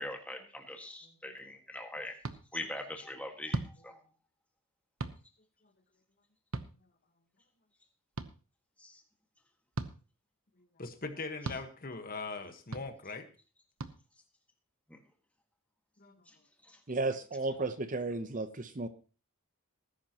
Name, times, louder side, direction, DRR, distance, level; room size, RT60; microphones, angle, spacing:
voice 1, 0.0-2.1 2.5-3.6 3.8-4.0 8.8-9.0 16.7-16.8, left 1 dB, 5° left, 1.7 m, -42 dB
sound 1, 2.2-2.4 3.5-3.7 5.0-5.2 6.5-6.7 8.2-8.3 9.7-9.9 11.4-11.6 12.7-12.9 13.8-13.9, right 3 dB, 65° right, 0.9 m, -36 dB
voice 2, 10.8-13.3 16.0-16.1, left 3 dB, 40° left, 1.4 m, -41 dB
voice 3, 16.9-18.9, right 3 dB, 35° right, 0.8 m, -34 dB
19.5 x 10.5 x 3.0 m
head